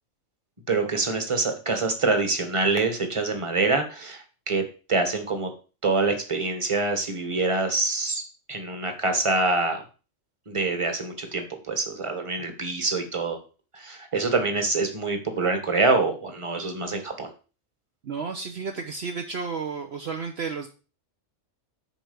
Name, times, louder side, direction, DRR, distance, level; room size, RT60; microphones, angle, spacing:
voice 1, 0.7-5.5 5.8-8.2 8.5-9.8 10.5-13.4 13.7-17.3, right 3 dB, 25° right, 6 dB, 1.4 m, -25 dB
voice 2, 18.0-20.7, right 5 dB, 55° right, 4 dB, 1.1 m, -32 dB
7.3 x 4.7 x 6.9 m, 0.35 s
omnidirectional pair, 1.3 m